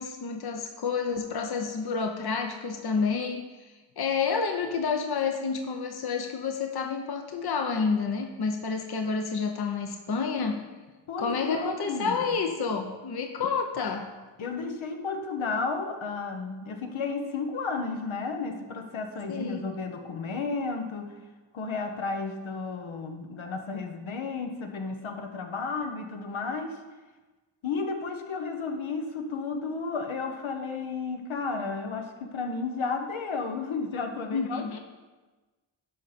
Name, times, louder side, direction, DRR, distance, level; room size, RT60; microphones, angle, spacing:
voice 1, 0.0-3.5 4.0-10.6 11.2-14.1 19.3-19.7 34.3-34.8, left 5 dB, 50° left, 4 dB, 0.9 m, -29 dB
voice 2, 11.1-12.4 14.4-21.2 21.5-26.8 27.6-34.8, left 4 dB, 75° left, 5 dB, 1.1 m, -33 dB
11.5 x 5.1 x 4.2 m, 1.3 s
cardioid pair, 50°, 47 cm